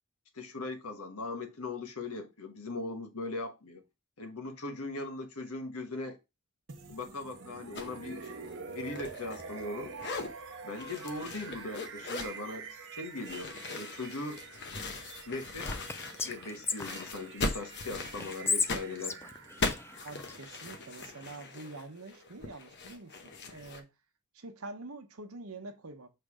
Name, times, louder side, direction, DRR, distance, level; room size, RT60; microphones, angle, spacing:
voice 1, 0.3-3.8 4.2-6.2 6.9-8.2 8.7-10.0 10.6-14.4 15.3-15.7 16.2-19.2, left 2 dB, 85° left, 1.4 m, -39 dB
sound 1, 6.7-22.6, right 5 dB, 60° right, 1.1 m, -47 dB
sound 2, 7.8-7.9 8.2-9.7 9.9-10.3 10.8-12.4 13.2-16.5 16.7-23.8, left 3 dB, 50° left, 1.0 m, -39 dB
Whispering, 15.6-17.6 18.2-20.4, left 4 dB, 10° left, 0.3 m, -35 dB
voice 2, 20.0-23.9 24.3-26.1, right 2 dB, 75° right, 1.1 m, -46 dB
6.6 x 3.4 x 4.9 m
head